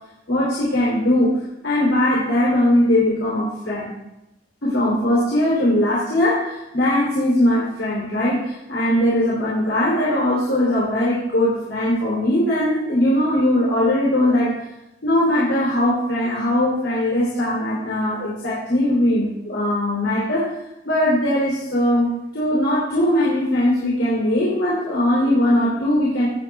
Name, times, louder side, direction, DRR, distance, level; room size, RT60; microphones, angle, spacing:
voice 1, 0.3-3.9 4.6-14.5 15.0-20.5 20.8-26.3, left 1 dB, 85° left, -7 dB, 3.2 m, -20 dB
17.0 x 8.9 x 2.4 m, 0.91 s
head